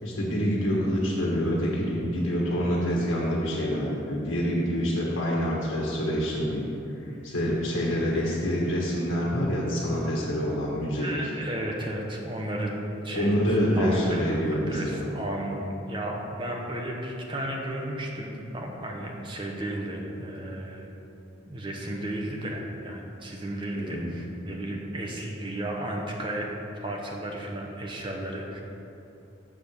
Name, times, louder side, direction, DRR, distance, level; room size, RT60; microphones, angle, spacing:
voice 1, 0.0-11.2 13.1-15.1 23.7-24.1, equal, 80° left, -4 dB, 1.4 m, -27 dB
voice 2, 11.0-12.7 13.0-13.3 13.7-20.9 21.5-26.5 26.7-28.6, right 1 dB, 25° right, 0 dB, 1.0 m, -33 dB
7.4 x 4.5 x 6.7 m, 2.9 s
head